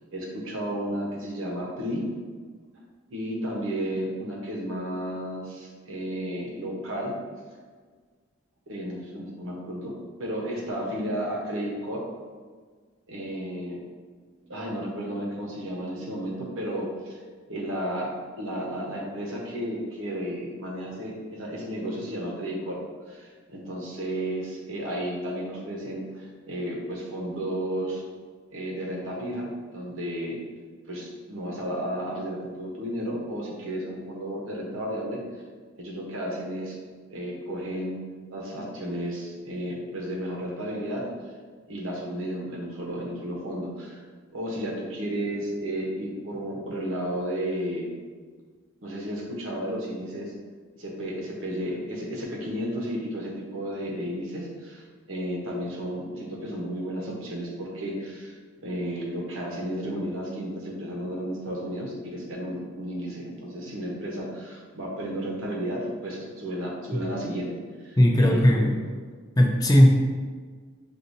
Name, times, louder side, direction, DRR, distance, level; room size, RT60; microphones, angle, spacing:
voice 1, 0.1-2.1 3.1-7.2 8.7-9.9 10.2-12.0 13.1-13.8 14.4-17.2 17.5-22.8 23.1-28.0 28.5-30.4 30.9-35.2 35.8-36.7 37.1-38.0 38.3-41.1 41.7-44.0 44.3-47.9 48.8-50.3 50.8-58.3 58.6-68.7, equal, 70° right, -2 dB, 1.0 m, -33 dB
voice 2, 68.0-68.8 69.4-70.0, equal, 20° left, 0 dB, 0.4 m, -18 dB
6.3 x 2.6 x 2.7 m, 1.5 s
head